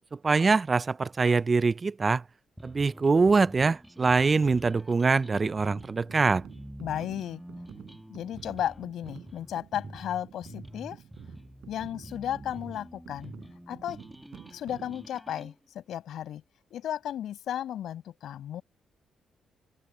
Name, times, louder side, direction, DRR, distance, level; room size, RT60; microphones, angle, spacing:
voice 1, 0.0-2.2 2.6-6.4, right 4 dB, 30° right, 0.4 m, -24 dB
sound 1, 2.6-15.5, equal, ahead, 2.2 m, -47 dB
sound 2, 5.4-15.1, right 10 dB, 75° right, 6.1 m, -49 dB
voice 2, 6.8-7.4 8.1-11.0 11.7-13.3 13.7-14.0 14.5-16.4 16.7-18.6, left 11 dB, 80° left, 6.2 m, -34 dB
cardioid pair, 115°, 0 cm